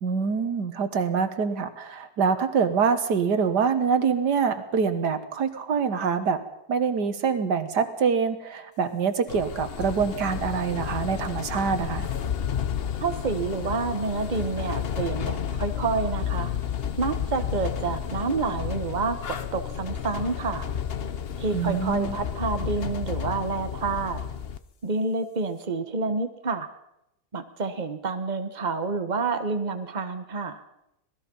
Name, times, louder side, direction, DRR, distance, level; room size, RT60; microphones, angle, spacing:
voice 1, 0.0-6.4 6.7-12.1 21.5-22.2, right 6 dB, 90° right, 10 dB, 2.0 m, -25 dB
sound 1, 9.3-24.6, left 8 dB, 45° left, 0.9 m, -31 dB
voice 2, 13.0-16.5 17.0-20.7 21.4-24.2 24.8-26.7 27.3-30.6, right 4 dB, 30° right, 8 dB, 1.4 m, -28 dB
26.0 x 18.5 x 5.5 m, 0.83 s
omnidirectional pair, 1.7 m